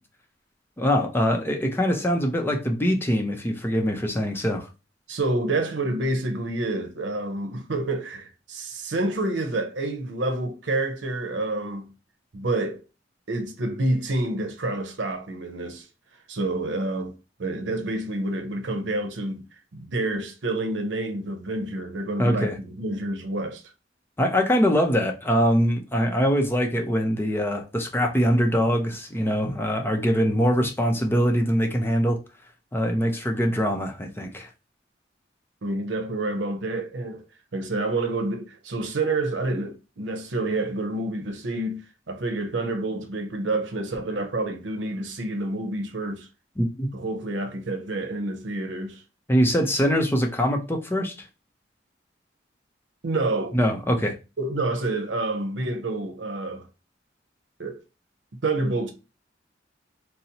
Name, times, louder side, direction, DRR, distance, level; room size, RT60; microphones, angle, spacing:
voice 1, 0.8-4.7 22.2-22.6 24.2-32.2 32.7-34.5 46.6-46.9 49.3-51.3 53.5-54.2, equal, 15° left, 0.5 m, -23 dB
voice 2, 5.1-11.9 12.3-12.8 13.3-15.9 16.3-19.4 19.7-23.6 35.6-37.2 37.5-46.3 46.9-49.0 53.0-53.6 54.4-56.7 57.6-57.8 58.4-58.9, right 2 dB, 80° right, 0.7 m, -28 dB
4.0 x 2.0 x 2.8 m
head